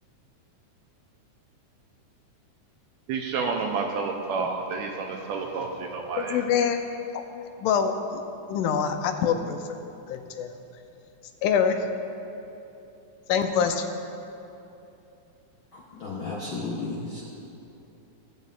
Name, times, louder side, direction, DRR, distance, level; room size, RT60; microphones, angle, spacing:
voice 1, 3.1-6.5, right 4 dB, 80° right, 2 dB, 1.7 m, -30 dB
voice 2, 6.2-6.8 7.6-8.2 8.5-9.6 10.1-10.6 11.4-11.8 13.3-13.9, left 7 dB, 90° left, 6 dB, 2.1 m, -24 dB
voice 3, 15.7-17.2, left 3 dB, 70° left, -5 dB, 1.1 m, -34 dB
17.5 x 8.0 x 2.4 m, 2.8 s
omnidirectional pair, 3.6 m